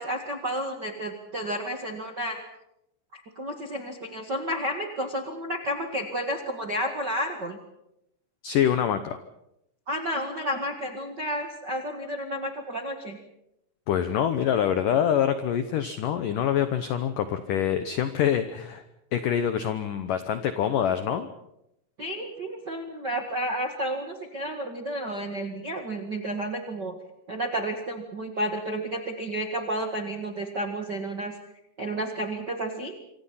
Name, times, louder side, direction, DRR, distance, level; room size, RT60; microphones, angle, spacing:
voice 1, 0.0-2.4 3.1-7.6 9.9-13.2 22.0-27.0 27.3-31.3 31.8-32.9, right 1 dB, 50° right, 4 dB, 1.2 m, -31 dB
voice 2, 8.4-9.2 13.9-18.8 19.1-21.3, left 9 dB, 80° left, 10 dB, 1.9 m, -25 dB
26.5 x 25.5 x 5.7 m, 0.84 s
omnidirectional pair, 5.2 m